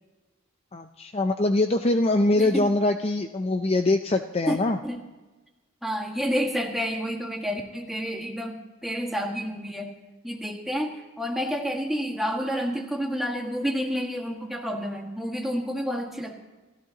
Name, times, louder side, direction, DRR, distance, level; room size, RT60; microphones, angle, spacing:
voice 1, 0.7-4.8, left 2 dB, 30° left, 7 dB, 0.5 m, -23 dB
voice 2, 2.4-2.8 4.5-4.6 4.8-5.0 5.8-9.9 10.2-16.3, equal, ahead, 0 dB, 1.7 m, -29 dB
30.0 x 14.0 x 2.9 m, 1.2 s
head